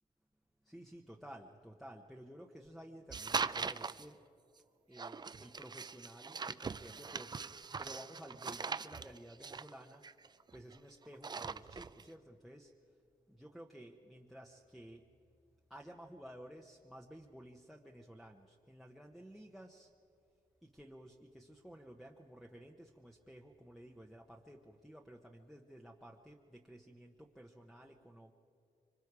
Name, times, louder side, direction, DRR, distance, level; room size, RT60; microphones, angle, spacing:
voice 1, 0.6-4.2 4.9-12.7 13.3-15.1 15.7-19.9 20.6-28.3, equal, ahead, 2 dB, 0.9 m, -54 dB
sound 1, 3.1-4.0 4.9-10.7 11.1-12.0, right 5 dB, 30° right, 0.4 m, -41 dB
25.5 x 25.0 x 4.8 m, 2.5 s
wide cardioid pair, 120°, 15 cm